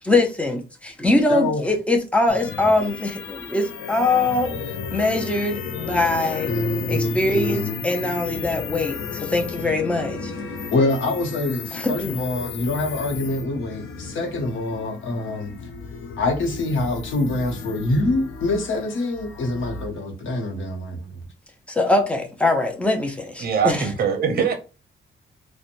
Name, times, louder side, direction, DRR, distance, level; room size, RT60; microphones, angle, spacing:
voice 1, 0.1-4.5 4.9-6.5 6.9-10.5 11.7-12.2 21.7-23.9, left 2 dB, 5° left, 0.5 m, -22 dB
voice 2, 1.2-1.6 6.5-7.8 10.5-15.5 16.2-21.2, left 2 dB, 75° left, 0.8 m, -25 dB
sound 1, 2.3-19.9, left 5 dB, 90° left, 0.4 m, -33 dB
voice 3, 23.4-24.5, right 7 dB, 50° right, 0.6 m, -22 dB
2.9 x 2.1 x 2.5 m
wide cardioid pair, 155°, 20 cm